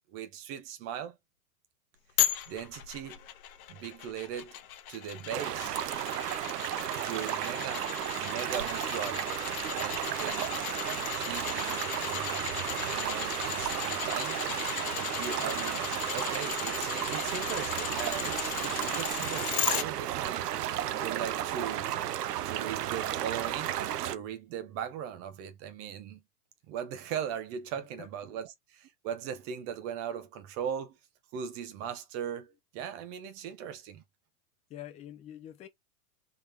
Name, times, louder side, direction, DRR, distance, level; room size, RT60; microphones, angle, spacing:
voice 1, 0.1-1.2 2.5-3.2 3.7-4.5 4.9-5.8 6.9-7.9 8.2-9.3 9.7-10.5 11.1-14.4 15.0-20.5 21.0-21.9 22.4-26.2 26.7-31.0 31.3-34.0, right 8 dB, 30° right, 0.6 m, -39 dB
sound 1, 2.2-19.8 20.3-20.4, left 11 dB, 65° left, 1.0 m, -36 dB
sound 2, 5.3-24.1, right 11 dB, 85° right, 0.7 m, -33 dB
voice 2, 27.8-28.1 28.3-28.4 34.7-35.7, left 11 dB, 15° left, 0.5 m, -47 dB
3.6 x 3.1 x 3.2 m
hypercardioid pair, 130°, 46 cm